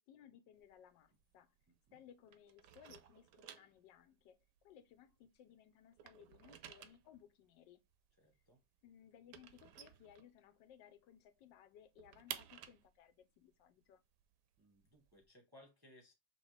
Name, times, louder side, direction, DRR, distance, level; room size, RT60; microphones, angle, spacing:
voice 1, 0.0-1.6 1.9-7.8 8.8-14.0, left 10 dB, 85° left, 1.3 m, -62 dB
sound 1, 0.5-2.0 2.3-5.5 5.8-10.8 11.1-11.2 11.5-15.3, right 10 dB, 75° right, 1.1 m, -54 dB
voice 2, 1.7-2.0 8.2-8.6 14.6-16.1, left 1 dB, 20° right, 0.6 m, -64 dB
5.0 x 3.0 x 3.2 m
omnidirectional pair, 1.9 m